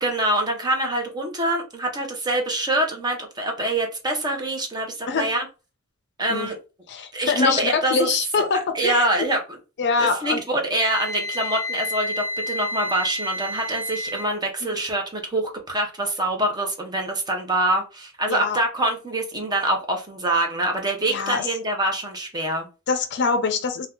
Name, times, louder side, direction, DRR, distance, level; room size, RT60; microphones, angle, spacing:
voice 1, 0.0-5.5 6.2-6.6 7.1-8.1 8.4-8.5 8.7-9.6 10.0-22.7, right 1 dB, 20° right, 0.7 m, -25 dB
voice 2, 6.9-9.1 9.8-10.4 14.6-14.8 18.3-18.6 21.1-21.5 22.9-23.9, left 4 dB, 55° left, 0.5 m, -24 dB
Wind instrument woodwind instrument, 10.7-14.3, left 1 dB, 60° right, 0.5 m, -30 dB
2.6 x 2.2 x 3.5 m
head